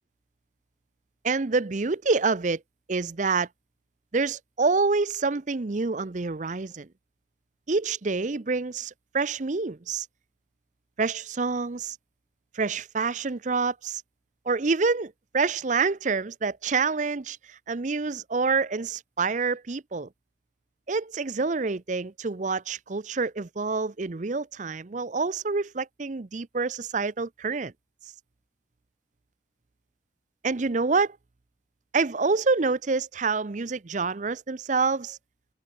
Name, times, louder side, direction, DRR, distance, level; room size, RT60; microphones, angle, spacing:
voice 1, 1.2-2.6 2.9-3.5 4.1-6.9 7.7-10.1 11.0-12.0 12.5-14.0 14.5-20.1 20.9-27.7 30.4-31.2 31.9-35.2, right 4 dB, 40° right, 0.6 m, -27 dB
head